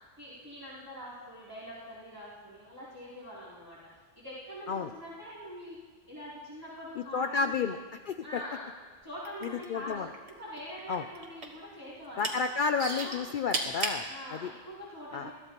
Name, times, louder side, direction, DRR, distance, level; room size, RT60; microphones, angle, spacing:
voice 1, 0.2-3.9 4.1-5.8 6.1-7.7 8.2-8.7 9.0-12.3 12.9-13.2 14.1-15.3, equal, 20° right, -10 dB, 3.3 m, -44 dB
voice 2, 7.0-7.8 8.1-8.4 9.4-10.1 10.9-11.0 12.2-14.1 14.3-14.5 15.1-15.3, left 5 dB, 60° left, 7 dB, 0.7 m, -31 dB
sound 1, 9.2-10.3 10.6-11.6 12.0-12.4 12.8-14.0 14.7-14.8, right 3 dB, 90° right, 1.7 m, -34 dB
21.5 x 14.5 x 3.0 m, 1.4 s
omnidirectional pair, 1.1 m